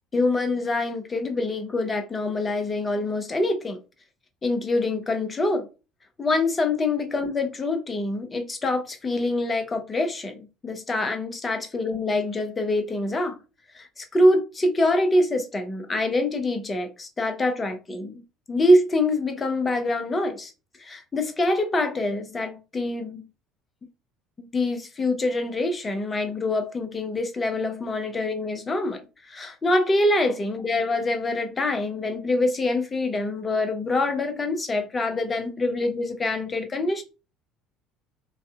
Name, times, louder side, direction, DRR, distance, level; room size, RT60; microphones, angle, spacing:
voice 1, 0.1-3.8 4.4-5.7 6.2-13.4 13.7-18.2 18.5-20.5 20.8-23.2 24.4-29.0 29.3-37.0, left 2 dB, 25° left, 0.6 m, -25 dB
3.2 x 2.6 x 2.3 m
figure-of-eight pair, 60°, 0 cm